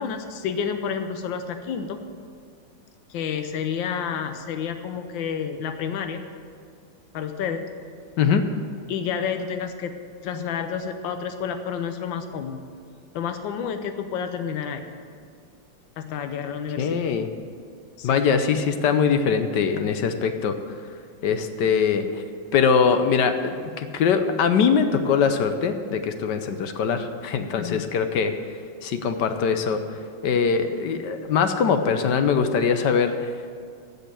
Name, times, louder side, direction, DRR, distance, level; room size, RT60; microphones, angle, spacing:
voice 1, 0.0-2.0 3.1-6.2 7.1-7.7 8.9-10.0 10.2-12.6 13.1-14.8 16.0-17.0 18.0-18.2 27.6-27.9, left 7 dB, 90° left, 7 dB, 1.5 m, -30 dB
voice 2, 8.2-8.5 16.8-17.3 18.0-20.6 21.2-22.1 22.5-28.3 28.8-29.8 30.2-33.3, left 6 dB, 70° left, 8 dB, 1.3 m, -22 dB
14.5 x 5.4 x 9.0 m, 2.2 s
omnidirectional pair, 2.0 m